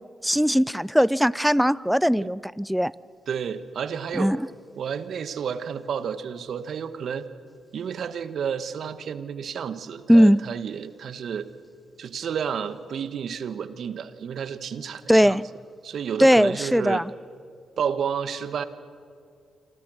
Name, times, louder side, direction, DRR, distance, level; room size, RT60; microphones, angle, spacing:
voice 1, 0.0-2.9 4.1-4.5 10.1-10.4 15.1-15.4 16.2-17.0, equal, ahead, 22 dB, 0.6 m, -19 dB
voice 2, 3.3-4.3 4.8-7.2 7.7-11.5 12.0-15.4 15.8-17.0 17.8-18.7, right 7 dB, 65° right, 13 dB, 1.3 m, -31 dB
27.0 x 26.0 x 6.4 m, 2.3 s
hypercardioid pair, 40°, 0 cm